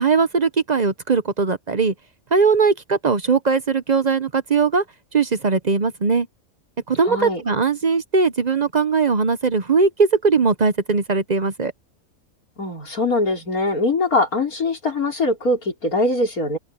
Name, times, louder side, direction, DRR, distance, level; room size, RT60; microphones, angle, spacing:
voice 1, 0.0-1.9 2.3-4.8 5.1-6.3 6.9-11.7, right 4 dB, 40° right, 0.7 m, -19 dB
voice 2, 7.0-7.4 12.6-16.6, left 2 dB, 75° left, 5.2 m, -22 dB
open air
omnidirectional pair, 1.5 m